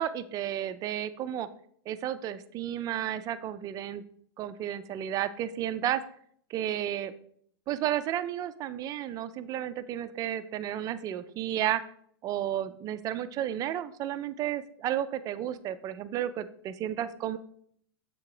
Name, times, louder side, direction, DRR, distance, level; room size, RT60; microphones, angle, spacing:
voice 1, 0.0-1.5 1.9-4.0 4.4-6.0 6.5-7.1 7.7-11.8 12.2-17.4, right 11 dB, 25° right, 13 dB, 0.4 m, -32 dB
7.5 x 3.7 x 4.7 m, 0.63 s
hypercardioid pair, 125°, 13 cm